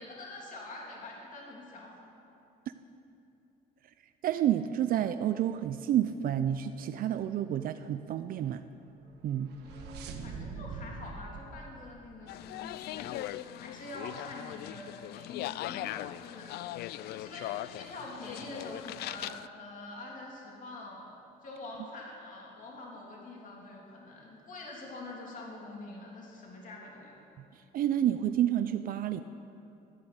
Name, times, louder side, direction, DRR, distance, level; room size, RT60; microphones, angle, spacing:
voice 1, 0.0-1.9 9.6-27.2, left 2 dB, 50° left, -2 dB, 3.1 m, -45 dB
voice 2, 4.2-8.6 9.2-9.5 27.5-29.2, right 11 dB, 60° right, 10 dB, 0.5 m, -29 dB
sound 1, 9.1-12.7, right 4 dB, 80° right, 1.4 m, -44 dB
sound 2, 12.3-19.5, left 14 dB, 70° left, 0.4 m, -40 dB
13.0 x 11.0 x 7.9 m, 2.8 s
cardioid pair, 110°, 17 cm